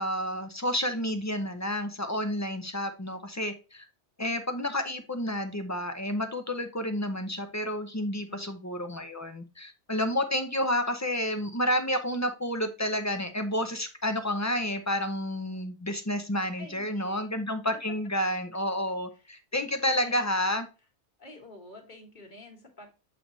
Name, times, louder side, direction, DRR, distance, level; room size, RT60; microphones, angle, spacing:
voice 1, 0.0-3.9 4.2-20.7, left 1 dB, 20° left, 7 dB, 0.6 m, -30 dB
voice 2, 16.6-17.3 19.1-20.2 21.2-22.9, left 2 dB, 40° left, 2 dB, 1.7 m, -49 dB
7.7 x 3.4 x 3.9 m, 0.32 s
omnidirectional pair, 1.2 m